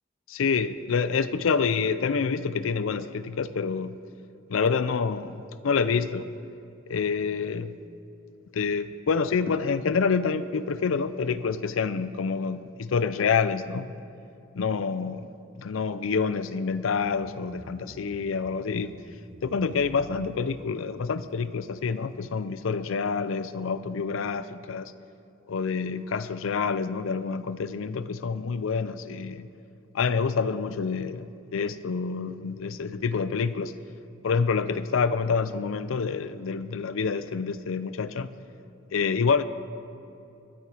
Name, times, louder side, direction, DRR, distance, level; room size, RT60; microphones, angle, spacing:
voice 1, 0.3-4.0 4.5-6.3 6.9-7.7 8.5-13.9 14.6-15.3 15.6-18.9 19.4-24.9 25.5-29.5 29.9-33.7 34.2-38.3 38.9-39.4, left 5 dB, 85° left, 13 dB, 0.5 m, -27 dB
sound 1, 17.0-21.6, right 1 dB, 40° right, 0.7 m, -49 dB
22.5 x 9.7 x 4.9 m, 2.7 s
head